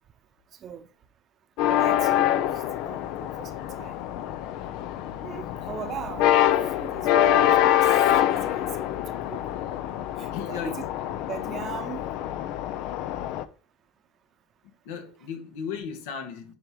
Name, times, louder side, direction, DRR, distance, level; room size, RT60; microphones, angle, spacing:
sound 1, 1.6-13.4, left 11 dB, 60° left, 0.7 m, -25 dB
voice 1, 1.6-2.4 2.8-4.0 5.2-7.9 8.3-8.9 9.3-9.4 10.2-10.8 11.3-12.0, right 8 dB, 35° right, 0.9 m, -39 dB
voice 2, 10.3-10.8 14.6-16.5, left 6 dB, 80° left, 2.3 m, -36 dB
9.8 x 4.6 x 4.8 m
supercardioid pair, 140°, 0 cm